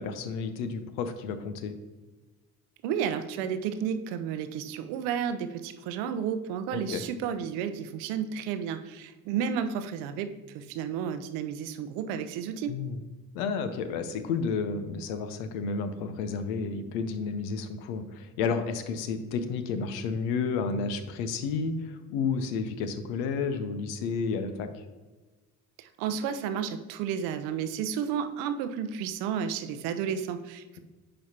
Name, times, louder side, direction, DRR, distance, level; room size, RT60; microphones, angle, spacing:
voice 1, 0.0-1.7 6.7-7.0 12.7-13.0 13.3-24.7, left 5 dB, 70° left, 9 dB, 0.8 m, -31 dB
voice 2, 2.8-12.7 25.8-30.8, right 8 dB, 65° right, 10 dB, 0.7 m, -32 dB
8.7 x 5.2 x 2.8 m, 1.3 s
figure-of-eight pair, 45°, 44 cm